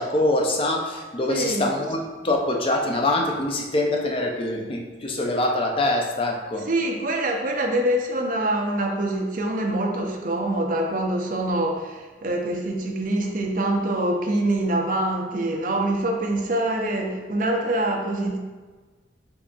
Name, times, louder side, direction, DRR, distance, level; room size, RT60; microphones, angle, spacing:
voice 1, 0.0-6.7, left 1 dB, 30° left, 1 dB, 0.4 m, -24 dB
voice 2, 1.3-1.7 6.7-18.4, right 1 dB, 45° right, 1 dB, 0.5 m, -25 dB
3.8 x 3.5 x 2.3 m, 1.3 s
head